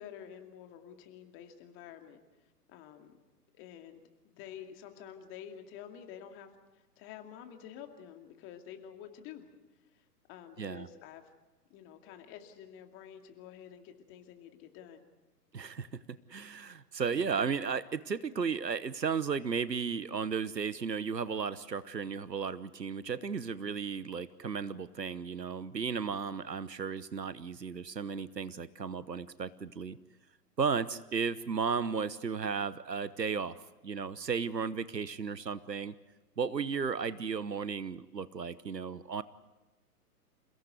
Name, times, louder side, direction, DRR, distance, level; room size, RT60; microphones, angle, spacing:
voice 1, 0.0-2.2 2.7-3.2 3.5-4.0 4.2-9.5 9.9-11.3 11.7-15.0 26.3-26.5 37.0-37.2, left 9 dB, 25° left, 5 dB, 2.4 m, -49 dB
voice 2, 15.5-30.0 30.6-33.6 33.8-36.0 36.4-39.2, right 6 dB, 85° right, 17 dB, 1.1 m, -34 dB
28.5 x 17.0 x 8.1 m, 1.1 s
figure-of-eight pair, 125°, 48 cm